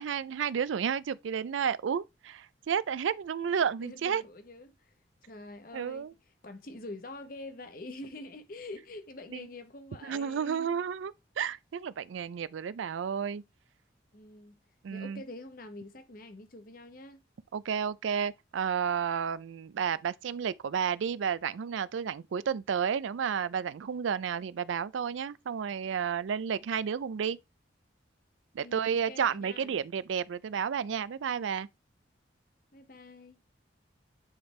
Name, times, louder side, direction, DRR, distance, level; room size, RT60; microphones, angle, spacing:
voice 1, 0.0-4.2 5.7-6.1 9.3-9.4 10.0-13.4 14.8-15.2 17.5-27.4 28.5-31.7, right 7 dB, 85° right, 0.4 m, -31 dB
voice 2, 3.8-4.9 5.2-6.1 6.4-10.8 14.1-14.6 14.9-17.2 28.6-29.8 32.7-33.4, left 2 dB, 45° left, 0.9 m, -46 dB
9.5 x 3.4 x 3.2 m
head